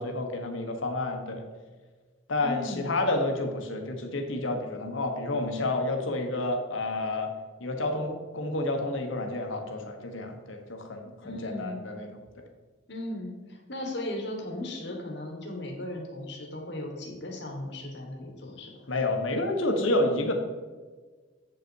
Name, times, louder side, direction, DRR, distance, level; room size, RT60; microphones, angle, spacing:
voice 1, 0.0-1.4 2.3-7.3 7.6-12.5 18.9-20.3, left 2 dB, 80° left, 4 dB, 1.2 m, -30 dB
voice 2, 2.4-2.9 11.2-11.8 12.9-18.8, left 1 dB, 60° left, 2 dB, 1.4 m, -37 dB
8.0 x 5.5 x 4.6 m, 1.4 s
head